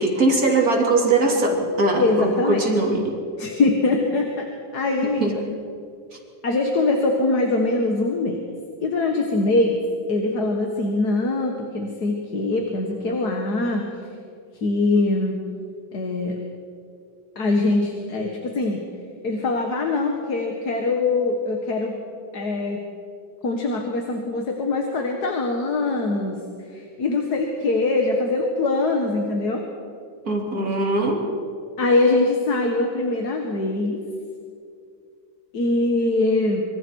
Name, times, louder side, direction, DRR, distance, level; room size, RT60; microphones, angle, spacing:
voice 1, 0.0-3.2 5.2-5.3 30.3-31.2, right 2 dB, 45° right, 0 dB, 3.4 m, -21 dB
voice 2, 2.0-2.6 3.4-4.5 4.7-5.4 6.4-8.4 8.8-9.8 10.1-13.9 14.6-15.4 15.9-16.4 17.4-18.8 19.2-22.0 22.3-22.8 23.4-26.4 26.7-29.6 31.8-34.0 35.5-36.6, left 2 dB, 55° left, 2 dB, 2.2 m, -22 dB
26.0 x 25.0 x 4.7 m, 2.4 s
omnidirectional pair, 2.1 m